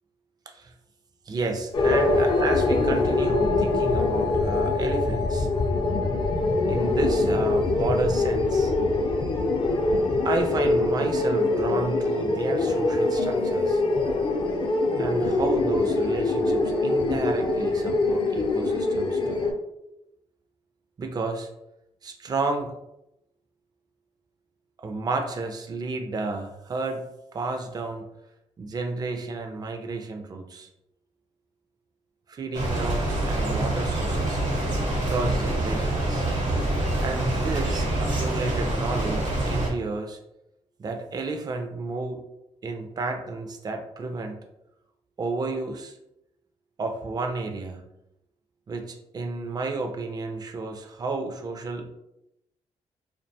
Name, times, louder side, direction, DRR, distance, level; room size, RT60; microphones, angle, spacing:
voice 1, 1.3-5.5 6.7-8.7 10.2-13.8 15.0-19.4 21.0-21.5 22.0-22.7 24.8-27.0 27.3-28.0 28.6-30.7 32.3-34.4 35.0-36.3 37.0-40.2 40.8-42.2 42.6-44.4 45.2-46.0 46.8-47.8 48.7-51.9, right 3 dB, 35° right, 4 dB, 0.4 m, -31 dB
sound 1, 1.7-19.5, left 2 dB, 45° left, 0.5 m, -23 dB
sound 2, 32.5-39.7, right 1 dB, 80° right, 0.9 m, -26 dB
2.5 x 2.2 x 2.6 m, 0.85 s
cardioid pair, 80°, 12 cm